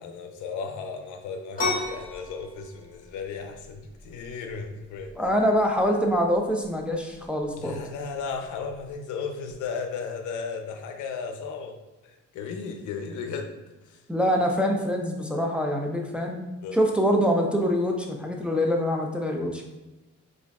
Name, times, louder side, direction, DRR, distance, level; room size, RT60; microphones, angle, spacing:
voice 1, 0.0-5.2 7.6-11.8 12.0-13.5 13.8-14.0 16.6-16.9, left 5 dB, 80° left, 5 dB, 0.5 m, -35 dB
sound 1, 1.6-8.9, left 3 dB, 30° left, 1.3 m, -36 dB
voice 2, 5.2-7.8 14.1-16.5 16.7-19.7, equal, 5° right, 1 dB, 0.4 m, -25 dB
5.0 x 2.5 x 2.2 m, 1.1 s
cardioid pair, 90°, 30 cm